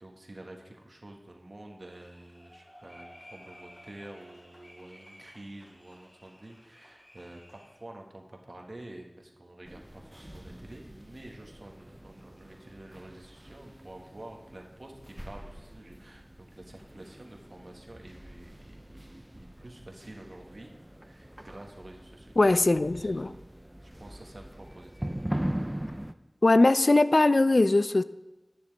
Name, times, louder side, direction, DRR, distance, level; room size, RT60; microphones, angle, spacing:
voice 1, 0.0-20.7 21.1-22.4 22.8-25.1, right 1 dB, 70° right, 1.5 m, -49 dB
sound 1, 1.9-7.8, equal, 50° left, 3.3 m, -54 dB
sound 2, 9.6-26.1, right 1 dB, 15° right, 0.5 m, -41 dB
voice 2, 22.4-23.3 26.4-28.0, left 2 dB, 70° left, 0.3 m, -21 dB
11.0 x 9.6 x 3.4 m
wide cardioid pair, 40°, 0 cm